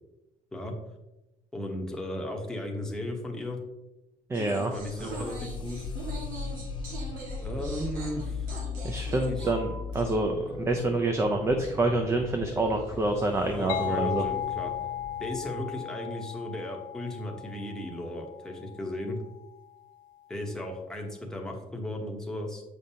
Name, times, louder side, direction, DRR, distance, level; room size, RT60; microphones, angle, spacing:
voice 1, 1.5-3.6 4.7-5.8 7.4-8.5 9.3-9.5 13.5-14.7 15.2-19.2 20.3-22.6, left 1 dB, 5° left, 1 dB, 0.9 m, -35 dB
voice 2, 4.3-4.7 5.0-5.2 8.8-10.4 10.6-14.2, right 2 dB, 20° right, 4 dB, 0.5 m, -27 dB
sound 1, 4.3-10.0, right 2 dB, 80° right, 1.8 m, -42 dB
sound 2, 4.8-15.4, left 4 dB, 35° left, 0.8 m, -38 dB
sound 3, 13.7-19.2, left 11 dB, 80° left, 0.5 m, -36 dB
7.7 x 5.2 x 2.8 m, 0.98 s
cardioid pair, 160°, 14 cm